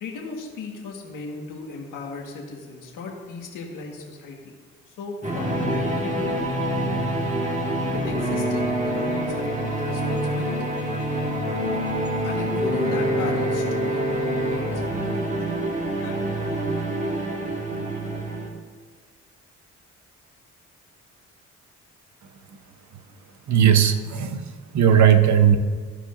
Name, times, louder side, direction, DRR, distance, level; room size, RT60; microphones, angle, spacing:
voice 1, 0.0-4.5 5.0-6.4 7.9-10.6 12.2-14.1 14.4-15.4 16.0-16.5, left 4 dB, 80° left, 0 dB, 1.6 m, -36 dB
sound 1, 5.2-18.5, right 1 dB, 25° right, 1.5 m, -26 dB
voice 2, 23.5-24.4 24.7-25.6, right 9 dB, 65° right, 9 dB, 0.8 m, -17 dB
14.5 x 5.0 x 2.6 m, 1.5 s
cardioid pair, 75°, 31 cm